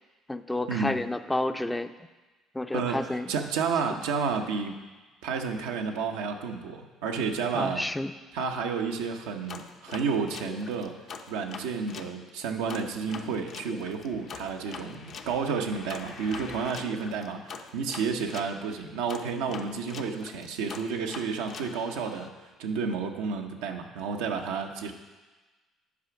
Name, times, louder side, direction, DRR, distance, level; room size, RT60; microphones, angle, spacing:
voice 1, 0.3-1.9 2.5-3.3 7.5-8.1, left 1 dB, 10° left, 10 dB, 0.4 m, -30 dB
voice 2, 2.7-4.8 5.2-7.9 8.3-11.0 11.3-22.3 22.6-24.9, right 5 dB, 85° right, 3 dB, 0.7 m, -31 dB
sound 1, 9.5-12.1 12.7-18.5 19.1-22.3, left 5 dB, 55° left, 0.6 m, -43 dB
8.5 x 5.0 x 5.8 m, 1.2 s
supercardioid pair, 70°, 0 cm